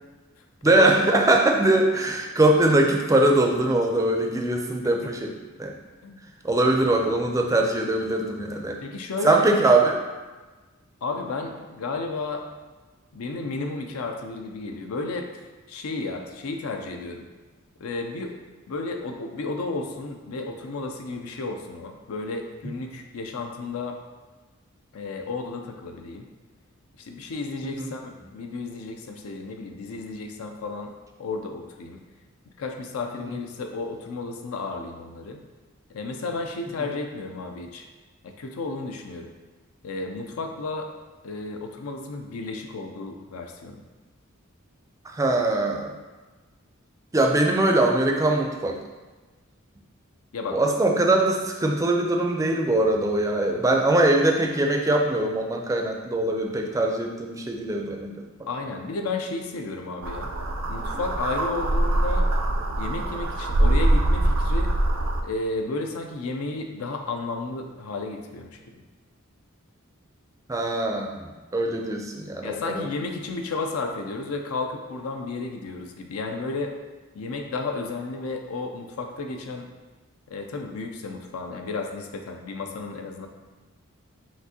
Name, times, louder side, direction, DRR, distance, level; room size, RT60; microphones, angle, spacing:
voice 1, 0.6-5.3 5.6-5.8 6.4-8.8 9.2-10.0 27.8-27.9 33.3-33.4 45.0-46.0 47.1-48.8 50.5-58.1 70.5-72.9, right 2 dB, 15° right, 2 dB, 0.4 m, -22 dB
voice 2, 8.8-9.5 11.0-12.5 13.1-15.3 15.7-17.3 17.8-18.4 18.7-24.0 24.9-26.3 27.0-30.9 31.2-32.0 32.6-35.4 35.9-37.9 38.2-39.3 39.8-40.9 41.2-43.8 50.3-50.7 58.5-60.3 60.7-62.3 62.8-64.7 65.2-68.8 72.4-76.7 77.1-79.7 80.3-83.3, left 3 dB, 85° left, 4 dB, 0.5 m, -33 dB
sound 1, 60.0-65.2, right 1 dB, 80° right, 0.5 m, -23 dB
5.9 x 2.5 x 2.7 m, 1.3 s
head